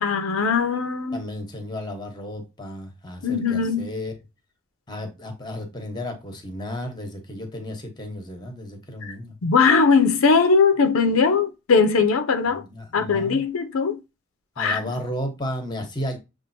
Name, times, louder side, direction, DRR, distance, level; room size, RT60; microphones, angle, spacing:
voice 1, 0.0-1.2 3.2-3.9 9.0-9.1 9.4-12.6 12.9-14.0 14.6-14.9, left 5 dB, 85° left, 0.5 m, -20 dB
voice 2, 1.1-4.1 4.9-9.4 12.5-13.4 14.6-16.2, left 1 dB, 20° left, 0.9 m, -33 dB
6.7 x 2.5 x 2.6 m
head